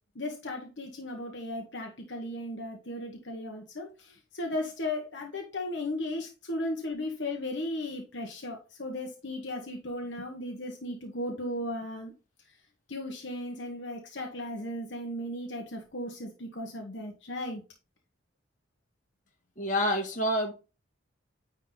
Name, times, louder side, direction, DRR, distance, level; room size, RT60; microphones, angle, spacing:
voice 1, 0.1-12.1 12.9-17.6, left 1 dB, 60° left, 1.3 m, -36 dB
voice 2, 19.6-20.5, equal, 40° left, 1.9 m, -27 dB
9.9 x 3.8 x 3.9 m
head